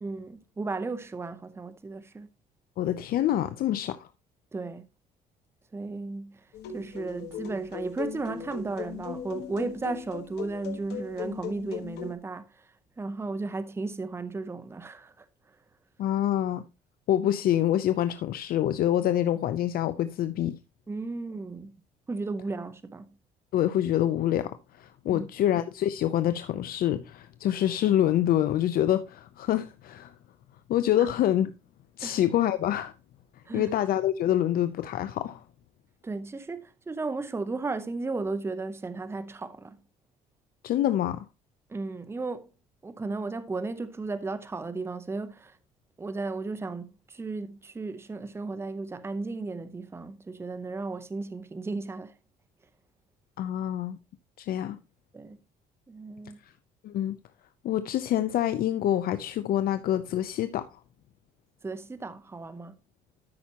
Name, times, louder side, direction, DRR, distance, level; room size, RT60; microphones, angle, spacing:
voice 1, 0.0-2.3 4.5-4.8 5.7-6.5 6.7-12.7 13.0-15.6 20.9-21.8 22.1-23.1 25.1-25.3 31.0-31.1 32.0-32.2 33.5-33.7 36.0-39.8 41.7-42.5 42.8-45.6 46.0-52.1 55.1-55.4 55.9-56.4 61.6-62.7, right 3 dB, 15° right, 0.7 m, -35 dB
voice 2, 2.8-4.1 16.0-16.6 17.1-20.6 23.5-30.1 30.7-31.5 32.0-32.9 33.5-35.4 40.6-41.3 53.4-54.0 54.4-54.8 56.8-57.2 57.6-60.7, left 11 dB, 60° left, 0.6 m, -26 dB
sound 1, 6.5-12.1, left 7 dB, 80° left, 1.4 m, -38 dB
12.5 x 5.7 x 2.9 m
cardioid pair, 110°, 17 cm